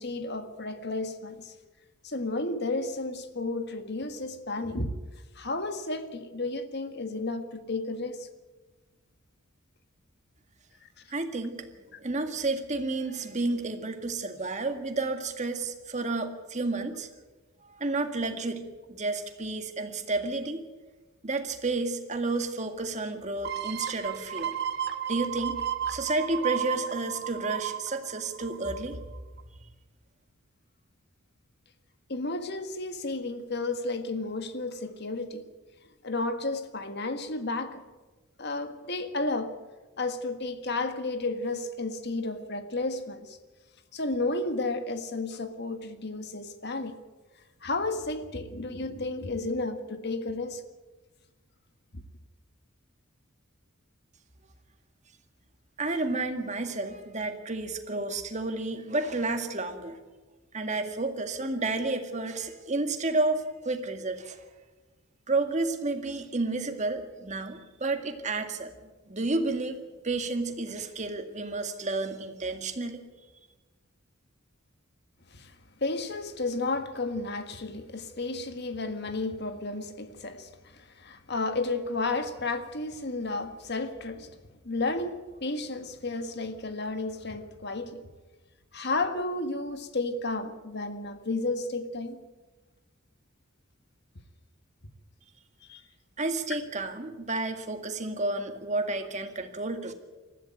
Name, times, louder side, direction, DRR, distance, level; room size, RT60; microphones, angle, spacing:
voice 1, 0.0-1.5 2.0-4.9 5.3-8.3 10.8-10.9 11.9-12.0 32.1-35.4 36.0-37.8 38.4-39.6 40.0-43.4 43.9-47.0 47.6-50.6 75.3-75.5 75.8-84.4 84.6-88.0 88.7-92.2 95.7-95.8, left 2 dB, 55° left, 1.7 m, -32 dB
voice 2, 11.1-11.7 12.0-17.1 17.6-18.6 18.9-20.7 21.2-24.6 25.1-25.6 25.9-29.0 55.8-60.0 60.5-64.4 65.3-68.7 69.1-69.8 70.0-73.0 96.2-99.9, right 2 dB, 35° right, 2.0 m, -31 dB
sound 1, 23.4-28.9 29.4-29.5, right 9 dB, 55° right, 1.3 m, -33 dB
20.5 x 14.5 x 9.1 m
head